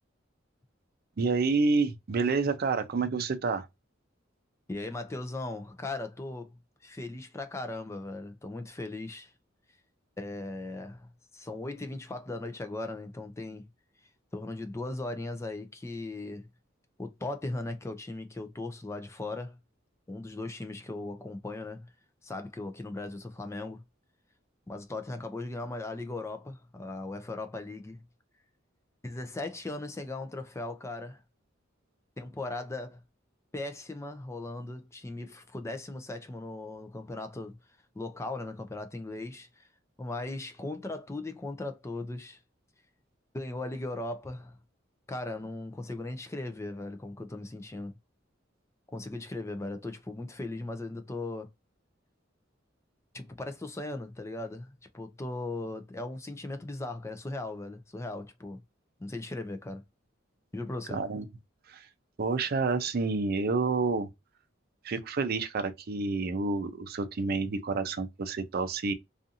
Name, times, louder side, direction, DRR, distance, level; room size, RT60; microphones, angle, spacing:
voice 1, 1.2-3.7 60.9-61.3 61.7-61.9 62.2-64.1 64.8-68.9, right 4 dB, 50° right, 0.5 m, -29 dB
voice 2, 4.7-6.6 6.8-9.3 10.2-11.1 11.3-13.7 14.3-16.5 17.0-19.6 20.1-21.9 22.2-23.8 24.7-28.0 29.0-31.2 32.2-33.0 33.5-37.6 37.9-39.7 40.0-42.4 43.3-44.6 45.1-47.9 48.9-51.5 53.1-58.6 59.0-59.8 60.5-61.1, left 2 dB, 15° left, 0.4 m, -38 dB
2.6 x 2.4 x 2.6 m
head